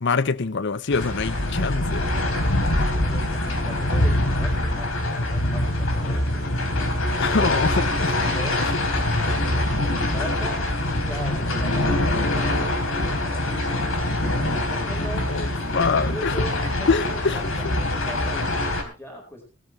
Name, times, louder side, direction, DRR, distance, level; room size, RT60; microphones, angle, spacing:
voice 1, 0.0-2.1 7.2-8.3 15.3-15.5 15.7-16.3 16.9-17.4, left 4 dB, 60° left, 0.7 m, -24 dB
sound 1, 0.9-18.8, left 1 dB, 85° left, 3.7 m, -24 dB
voice 2, 2.9-6.5 7.3-8.9 9.5-10.6 11.0-12.5 13.0-13.7 14.7-15.2 15.9-19.4, left 1 dB, 10° left, 4.7 m, -39 dB
18.0 x 13.0 x 3.2 m
head